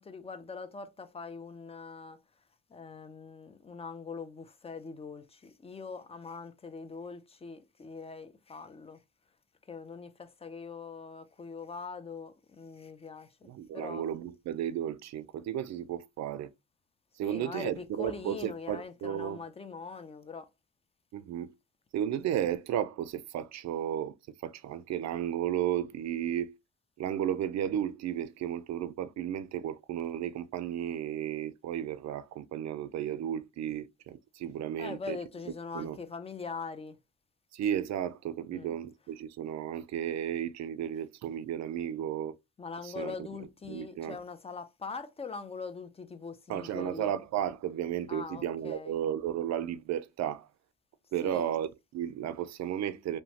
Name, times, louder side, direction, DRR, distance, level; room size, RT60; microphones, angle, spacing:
voice 1, 0.0-2.2 2.7-9.0 9.7-14.1 17.2-20.5 34.8-37.0 38.5-38.8 42.6-47.1 48.1-49.0 51.2-51.5, left 4 dB, 20° left, 0.5 m, -42 dB
voice 2, 13.4-16.5 17.2-19.4 21.1-21.5 21.9-24.1 24.4-26.5 27.0-35.2 35.7-36.0 37.5-42.3 42.8-43.1 43.7-44.2 46.5-50.5 51.1-53.2, right 10 dB, 60° right, 0.5 m, -33 dB
2.9 x 2.2 x 2.7 m
cardioid pair, 90°, 30 cm